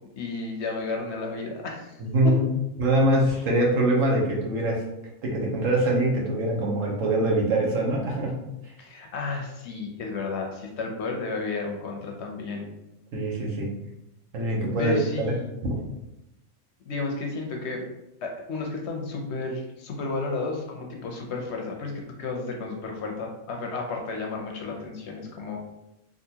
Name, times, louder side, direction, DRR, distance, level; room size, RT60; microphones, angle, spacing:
voice 1, 0.2-2.0 2.2-2.3 3.3-3.4 8.8-12.7 14.8-15.5 16.9-17.8 18.2-25.6, left 3 dB, 65° left, 1 dB, 0.8 m, -32 dB
voice 2, 2.0-2.5 2.8-4.8 5.2-8.4 13.1-13.7 14.3-15.0 15.6-15.7, right 1 dB, 80° right, -2 dB, 1.2 m, -23 dB
3.8 x 2.4 x 2.7 m, 0.90 s
omnidirectional pair, 1.3 m